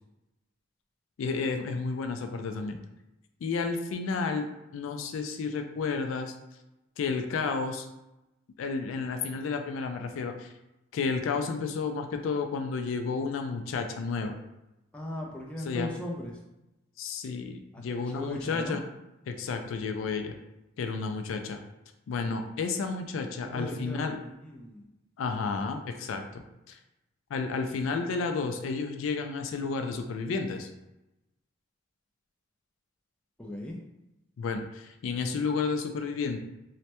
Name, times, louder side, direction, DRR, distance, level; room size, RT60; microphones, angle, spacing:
voice 1, 1.2-2.8 3.4-4.5 4.7-6.3 7.0-7.9 8.6-10.5 10.9-14.4 15.7-15.9 17.0-18.8 19.3-20.4 20.8-21.6 22.1-24.2 25.2-26.8 27.3-30.7 34.4-36.4, left 4 dB, 75° left, 6 dB, 0.3 m, -31 dB
voice 2, 14.9-16.4 17.7-18.8 23.4-24.8 33.4-33.8, left 1 dB, 5° left, -2 dB, 0.4 m, -38 dB
3.2 x 2.1 x 2.8 m, 0.92 s
head